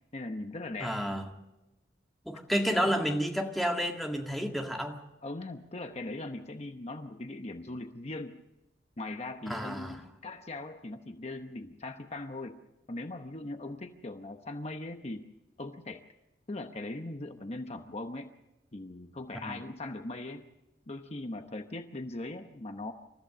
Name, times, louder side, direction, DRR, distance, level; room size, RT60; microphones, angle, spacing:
voice 1, 0.1-1.0 2.7-3.0 5.2-8.4 9.0-12.6 12.9-15.3 15.6-16.0 16.5-18.3 18.7-20.5 20.9-22.9, left 2 dB, 35° left, 6 dB, 0.9 m, -40 dB
voice 2, 0.8-1.2 2.3-5.0 9.5-10.0 19.4-19.6, equal, ahead, 2 dB, 1.9 m, -30 dB
28.0 x 14.5 x 6.7 m, 0.96 s
head